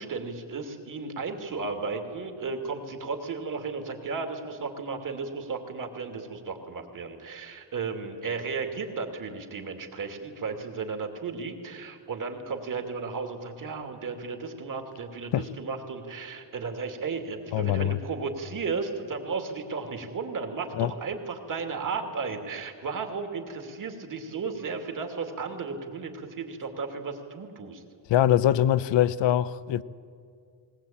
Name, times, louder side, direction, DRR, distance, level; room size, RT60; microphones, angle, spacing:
voice 1, 0.0-27.8, right 4 dB, 45° right, 2.7 m, -34 dB
voice 2, 17.5-18.0 20.8-20.9 28.1-29.8, left 12 dB, 75° left, 0.8 m, -23 dB
20.0 x 19.5 x 8.9 m
cardioid pair, 145°, 44 cm